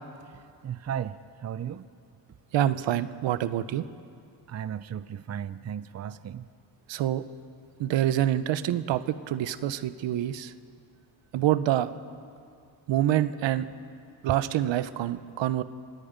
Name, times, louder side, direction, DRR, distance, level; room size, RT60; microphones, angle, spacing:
voice 1, 0.3-1.9 4.5-6.5, right 9 dB, 35° right, 15 dB, 0.6 m, -36 dB
voice 2, 2.5-3.9 6.9-7.2 7.8-10.5 11.3-11.9 12.9-13.6 14.2-15.6, right 12 dB, 80° right, 13 dB, 1.0 m, -26 dB
30.0 x 18.0 x 5.3 m, 2.3 s
cardioid pair, 90°, 44 cm